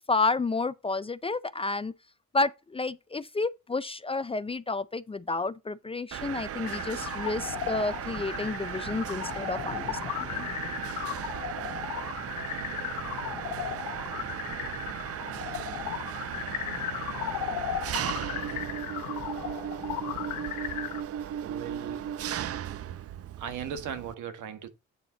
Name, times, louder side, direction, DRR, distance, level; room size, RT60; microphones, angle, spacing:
voice 1, 0.0-1.9 2.3-10.5, left 3 dB, 20° left, 0.4 m, -30 dB
Mechanisms, 6.1-24.1, right 10 dB, 50° right, 0.6 m, -36 dB
sound 1, 6.6-21.0, left 11 dB, 90° left, 1.0 m, -36 dB
voice 2, 21.4-22.0 23.4-24.7, right 8 dB, 80° right, 1.7 m, -37 dB
8.8 x 4.2 x 4.0 m
cardioid pair, 90°, 30 cm